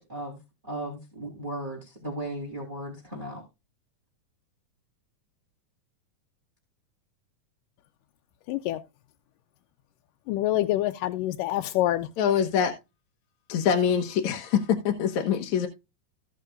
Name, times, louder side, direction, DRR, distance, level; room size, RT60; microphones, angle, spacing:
voice 1, 0.6-3.4, right 1 dB, 15° right, 3.9 m, -36 dB
voice 2, 8.5-8.8 10.3-12.1, left 14 dB, 85° left, 2.3 m, -26 dB
voice 3, 12.2-12.7 13.5-15.7, left 8 dB, 65° left, 2.3 m, -24 dB
17.0 x 6.6 x 2.5 m
omnidirectional pair, 3.8 m